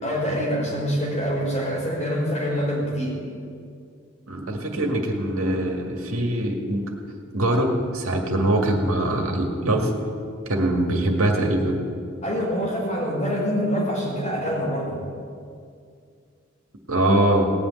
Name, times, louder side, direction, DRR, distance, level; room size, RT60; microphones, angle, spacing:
voice 1, 0.0-3.1 12.2-15.0, equal, 35° left, -4 dB, 4.8 m, -25 dB
voice 2, 4.3-6.8 7.3-9.9 10.5-11.8 16.9-17.5, right 1 dB, 85° right, 2 dB, 2.0 m, -22 dB
18.5 x 6.2 x 9.2 m, 2.2 s
head